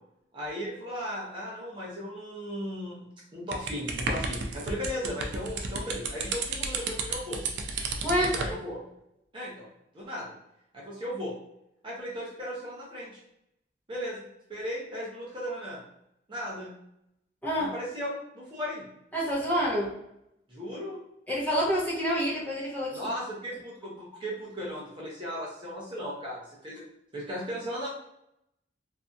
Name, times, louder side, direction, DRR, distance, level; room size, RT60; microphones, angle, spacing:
voice 1, 0.3-3.1 3.3-7.4 8.3-8.8 9.3-9.7 9.9-10.3 10.7-11.3 11.8-13.2 13.9-14.2 14.5-15.8 16.3-16.7 17.6-18.9 20.5-21.0 22.9-26.8 27.1-27.9, equal, 30° right, -5 dB, 0.6 m, -36 dB
sound 1, 3.5-8.6, right 3 dB, 70° right, 0.4 m, -32 dB
voice 2, 7.8-8.3 17.4-17.7 19.1-19.9 21.3-23.1, equal, 10° left, -7 dB, 0.8 m, -28 dB
2.6 x 2.5 x 2.3 m, 0.80 s
head